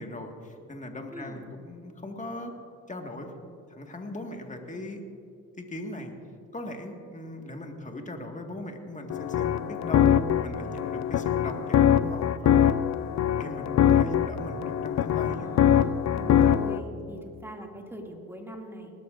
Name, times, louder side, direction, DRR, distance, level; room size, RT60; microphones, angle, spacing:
voice 1, 0.0-2.5 2.9-3.3 3.7-5.0 5.6-6.1 6.5-10.1 10.4-12.8 13.4-15.5, left 1 dB, 15° left, 3 dB, 1.9 m, -39 dB
voice 2, 1.1-1.5 15.2-18.9, equal, 5° right, 1 dB, 2.5 m, -41 dB
sound 1, 9.1-16.8, left 9 dB, 40° left, 0.6 m, -23 dB
19.5 x 12.5 x 2.6 m, 2.5 s
hypercardioid pair, 60°, 42 cm